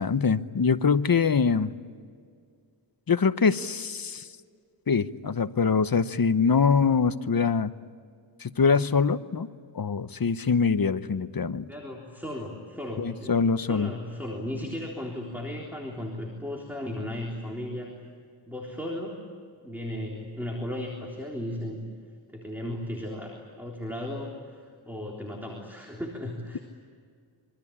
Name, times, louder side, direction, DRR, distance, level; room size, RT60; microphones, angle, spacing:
voice 1, 0.0-1.7 3.1-4.2 4.9-7.7 8.4-9.5 9.7-11.7 13.0-13.9, left 5 dB, 45° left, 12 dB, 0.9 m, -24 dB
voice 2, 11.7-17.9 18.5-19.2 19.6-21.8 22.3-26.6, left 1 dB, 5° right, -1 dB, 3.7 m, -36 dB
26.5 x 24.5 x 8.7 m, 2.1 s
wide cardioid pair, 120°, 48 cm